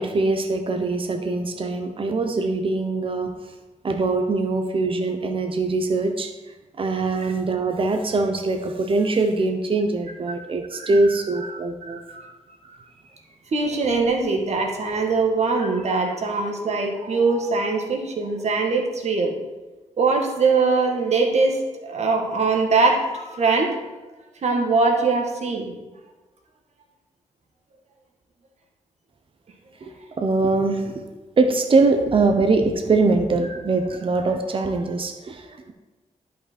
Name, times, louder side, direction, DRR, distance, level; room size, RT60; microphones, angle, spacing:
voice 1, 0.0-3.3 3.8-6.3 6.8-12.0 29.8-31.1 31.4-35.7, right 3 dB, 45° right, 5 dB, 0.9 m, -22 dB
voice 2, 11.8-12.3 13.5-19.4 20.0-23.8 24.4-25.7, right 4 dB, 60° right, 2 dB, 1.5 m, -22 dB
10.5 x 5.6 x 4.3 m, 1.2 s
cardioid pair, 80°, 13 cm